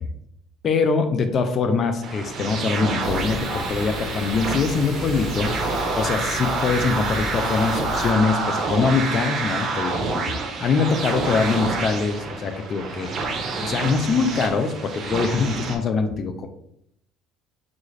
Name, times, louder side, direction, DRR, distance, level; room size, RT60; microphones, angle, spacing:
voice 1, 0.6-5.5 6.0-10.3 10.6-13.1 13.6-16.5, left 4 dB, 45° left, 8 dB, 0.4 m, -23 dB
sound 1, 2.0-15.8, right 3 dB, 50° right, 0.6 m, -28 dB
sound 2, 3.0-8.1, left 4 dB, 60° left, 1.0 m, -33 dB
3.7 x 2.4 x 3.2 m, 0.73 s
supercardioid pair, 80°, 0 cm